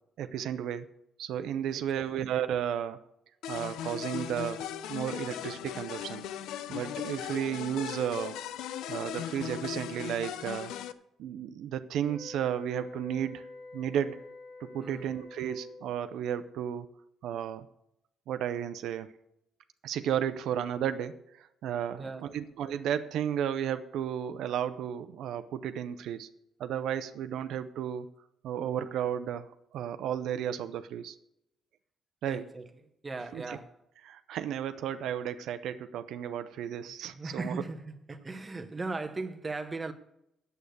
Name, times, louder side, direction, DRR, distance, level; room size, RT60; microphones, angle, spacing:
voice 1, 0.2-0.9 1.2-3.0 3.5-4.6 4.9-6.2 6.7-8.4 8.9-10.7 11.2-13.4 13.7-14.2 14.6-16.9 17.2-17.7 18.3-19.1 19.8-26.3 26.6-28.1 28.4-31.2 32.2-32.5 33.3-33.6 34.0-37.5, right 9 dB, 75° right, 0.6 m, -33 dB
voice 2, 1.7-2.2 14.8-15.1 22.0-22.3 32.3-32.7 33.0-33.8 37.1-39.9, right 3 dB, 20° right, 1.0 m, -38 dB
sound 1, 3.4-10.9, left 10 dB, 90° left, 0.6 m, -38 dB
sound 2, 12.0-16.0, left 2 dB, 40° left, 2.2 m, -47 dB
8.6 x 8.0 x 8.2 m
cardioid pair, 145°, 0 cm